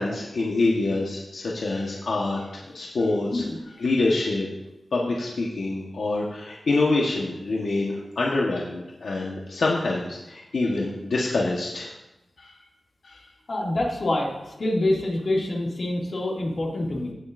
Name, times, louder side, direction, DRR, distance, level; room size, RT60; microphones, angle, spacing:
voice 1, 0.0-3.4 3.8-4.5 4.9-11.9 12.4-12.5 13.0-13.3, left 2 dB, 80° left, -3 dB, 1.3 m, -26 dB
voice 2, 13.5-17.1, left 1 dB, 55° left, -3 dB, 2.4 m, -26 dB
16.5 x 7.4 x 2.6 m, 0.96 s
wide cardioid pair, 95°, 0 cm